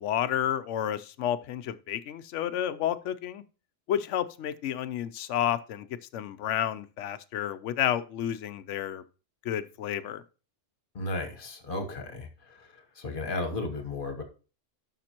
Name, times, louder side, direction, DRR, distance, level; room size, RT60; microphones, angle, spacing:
voice 1, 0.0-3.4 3.9-5.9 6.1-9.0 9.4-10.2, left 10 dB, 80° left, 14 dB, 0.9 m, -30 dB
voice 2, 10.9-12.6 13.0-14.2, left 2 dB, 45° left, 5 dB, 1.3 m, -34 dB
12.0 x 5.9 x 2.9 m, 0.35 s
omnidirectional pair, 1.2 m